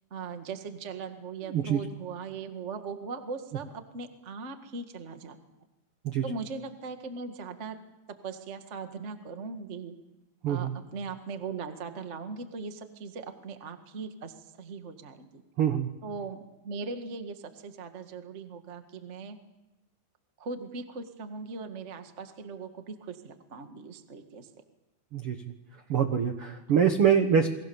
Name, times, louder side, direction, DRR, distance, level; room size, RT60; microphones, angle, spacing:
voice 1, 0.1-5.4 6.2-7.8 8.2-9.9 10.5-15.4 16.0-19.4 20.4-24.5 26.7-26.9, right 4 dB, 60° right, 7 dB, 0.7 m, -39 dB
voice 2, 1.5-1.8 6.0-6.2 10.4-10.7 15.6-15.9 25.1-25.4 25.9-27.5, right 7 dB, 80° right, 7 dB, 1.2 m, -24 dB
29.0 x 22.5 x 7.1 m, 0.97 s
omnidirectional pair, 4.6 m